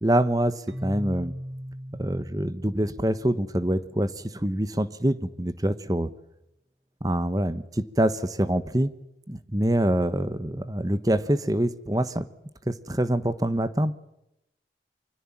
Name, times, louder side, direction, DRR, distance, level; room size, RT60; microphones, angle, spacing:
voice 1, 0.0-1.3 2.0-6.1 7.0-8.9 9.3-12.3 12.7-13.9, right 1 dB, 20° right, 13 dB, 1.2 m, -25 dB
Keyboard (musical), 0.7-4.4, equal, 85° right, 2.4 m, -39 dB
25.5 x 24.5 x 7.4 m, 0.84 s
head